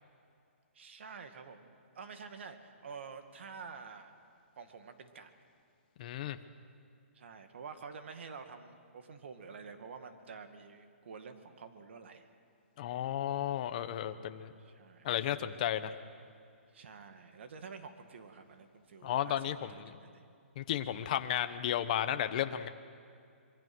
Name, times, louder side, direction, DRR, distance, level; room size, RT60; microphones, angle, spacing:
voice 1, 0.7-4.1 4.6-5.3 7.1-12.3 14.6-15.4 16.7-19.4 19.7-20.2, right 5 dB, 60° right, 7 dB, 2.2 m, -49 dB
voice 2, 6.0-6.4 12.8-14.5 15.0-15.9 19.0-20.0 20.6-22.7, left 11 dB, 35° left, 10 dB, 1.0 m, -33 dB
25.5 x 23.0 x 6.2 m, 2.3 s
hypercardioid pair, 165°, 7 cm